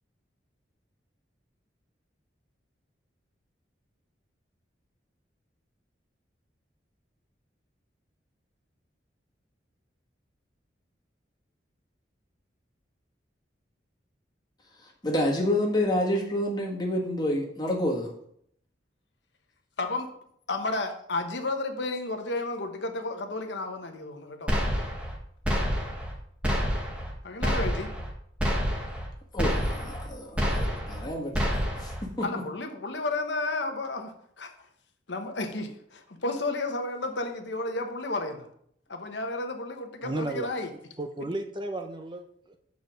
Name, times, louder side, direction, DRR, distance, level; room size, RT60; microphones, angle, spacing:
voice 1, 15.0-18.1 29.3-31.3 31.8-32.2, left 1 dB, 20° left, -2 dB, 1.6 m, -28 dB
voice 2, 20.5-24.5 27.2-27.9 32.2-34.1 34.4-34.5 35.1-38.5 38.9-40.7, left 2 dB, 70° left, 5 dB, 1.0 m, -32 dB
sound 1, 24.5-25.2 25.4-26.1 26.4-27.1 27.4-28.1 28.4-29.1 29.4-30.1 30.4-31.1 31.3-32.0, equal, 5° right, 1.2 m, -28 dB
voice 3, 40.0-40.5 41.0-42.6, right 1 dB, 25° right, 5 dB, 0.6 m, -34 dB
7.0 x 4.8 x 6.2 m, 0.68 s
head